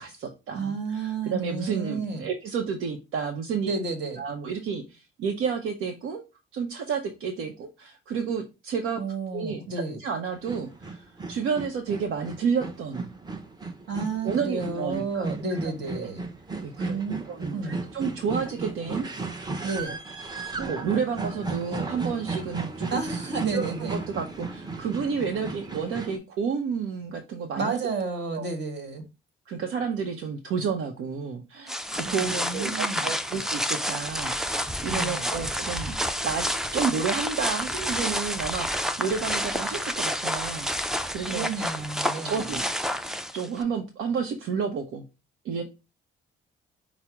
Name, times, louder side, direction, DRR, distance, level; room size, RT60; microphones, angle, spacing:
voice 1, 0.0-3.7 4.2-6.2 6.5-9.0 9.3-9.6 10.0-13.1 14.2-15.3 15.6-16.1 16.6-17.0 17.3-19.1 19.3-19.5 19.8-19.9 20.5-23.0 23.5-27.8 28.3-28.5 29.5-35.9 36.2-36.4 36.7-40.7 41.1-41.5 42.2-42.6 43.3-45.0 45.4-45.6, right 6 dB, 80° right, 3 dB, 0.7 m, -31 dB
voice 2, 0.5-2.3 3.7-4.2 9.0-10.0 13.9-16.3 16.8-17.2 17.5-17.8 19.6-20.0 22.9-24.0 27.6-29.0 32.0-33.1 34.9-35.3 41.3-42.6, right 4 dB, 60° right, 5 dB, 1.5 m, -31 dB
sound 1, 10.3-26.2, right 3 dB, 20° right, 0.8 m, -35 dB
sound 2, 31.7-43.6, equal, ahead, 0.4 m, -29 dB
5.6 x 2.0 x 4.6 m, 0.28 s
cardioid pair, 90°, 20 cm